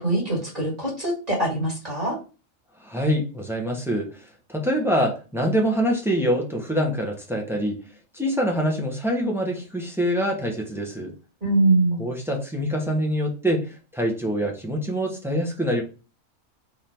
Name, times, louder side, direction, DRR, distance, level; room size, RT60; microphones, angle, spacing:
voice 1, 0.0-2.2 11.4-12.0, right 2 dB, 30° right, -3 dB, 1.8 m, -23 dB
voice 2, 2.8-7.8 8.1-11.1 12.0-15.8, equal, ahead, 0 dB, 0.8 m, -25 dB
3.7 x 3.3 x 4.4 m, 0.33 s
omnidirectional pair, 1.4 m